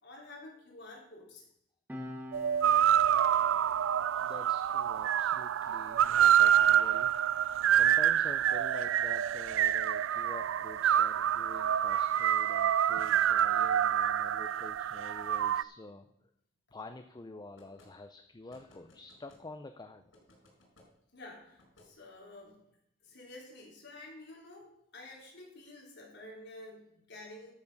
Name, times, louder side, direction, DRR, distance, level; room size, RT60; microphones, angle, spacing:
voice 1, 0.0-1.5 13.0-13.2 21.1-22.6 23.0-27.5, left 2 dB, 65° left, -2 dB, 3.5 m, -50 dB
Piano, 1.9-8.9 9.2-9.4, left 1 dB, 10° right, 1.7 m, -51 dB
sound 1, 2.3-15.6, right 10 dB, 80° right, 0.3 m, -27 dB
voice 2, 4.2-16.1 16.7-20.1, left 2 dB, 20° left, 7 dB, 0.5 m, -48 dB
sound 2, 17.6-17.9 18.5-19.4 20.1-20.9 21.6-21.9, left 1 dB, 90° left, 5.0 m, -60 dB
12.5 x 7.1 x 5.3 m, 0.77 s
head